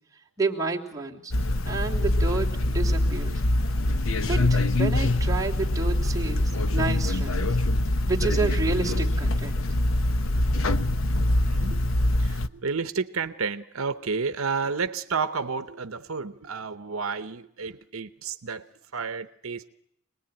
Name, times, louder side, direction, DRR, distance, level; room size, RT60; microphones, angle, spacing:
voice 1, 0.4-1.3 1.7-3.4 4.3-7.5 8.1-9.5, right 3 dB, 15° right, 3.0 m, -30 dB
sound 1, 1.3-12.5, left 1 dB, 70° left, 0.9 m, -24 dB
voice 2, 11.3-11.9 12.2-19.7, right 5 dB, 75° right, 0.9 m, -31 dB
26.5 x 20.0 x 9.0 m
head